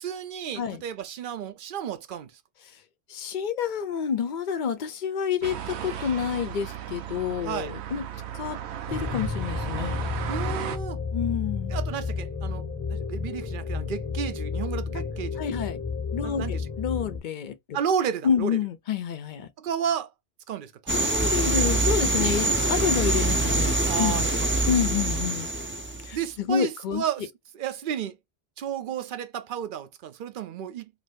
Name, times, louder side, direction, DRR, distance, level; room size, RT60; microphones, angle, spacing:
voice 1, 0.0-2.3 7.4-7.7 10.3-11.0 11.7-15.4 16.2-16.6 17.7-18.5 19.6-20.1 20.5-21.0 23.9-24.3 26.1-28.2 28.6-30.9, right 8 dB, 60° right, 0.6 m, -32 dB
voice 2, 3.1-8.1 8.3-8.6 8.9-10.0 11.1-11.8 15.4-15.8 16.1-17.8 18.2-19.5 20.9-24.2 24.7-25.5 26.0-27.0, left 7 dB, 55° left, 0.6 m, -28 dB
sound 1, 5.4-10.8, right 10 dB, 85° right, 0.9 m, -35 dB
sound 2, 8.9-17.2, left 5 dB, 10° left, 0.8 m, -31 dB
sound 3, 20.9-26.1, right 2 dB, 20° right, 0.3 m, -24 dB
2.6 x 2.6 x 3.3 m
omnidirectional pair, 1.1 m